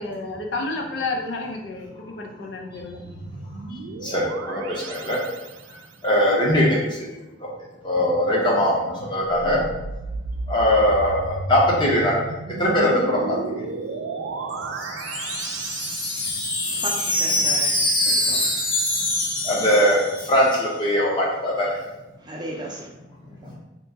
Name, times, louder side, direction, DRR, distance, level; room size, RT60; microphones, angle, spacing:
voice 1, 0.0-3.0, left 3 dB, 70° left, 1 dB, 0.5 m, -30 dB
sound 1, 2.8-5.9 9.3-16.9, right 3 dB, 80° right, 0.3 m, -34 dB
voice 2, 4.0-4.6 4.9-5.2 6.0-6.8 7.8-8.8 9.1-9.6 10.5-12.1 12.6-13.2 19.5-20.0 20.3-21.7, equal, 25° left, -4 dB, 0.8 m, -20 dB
Wind chime, 14.5-20.5, left 1 dB, 55° left, 0.9 m, -24 dB
voice 3, 16.6-17.6 18.0-18.5 22.2-22.9 23.4-23.5, right 1 dB, 25° right, -2 dB, 0.5 m, -35 dB
2.8 x 2.5 x 3.5 m, 1.0 s
head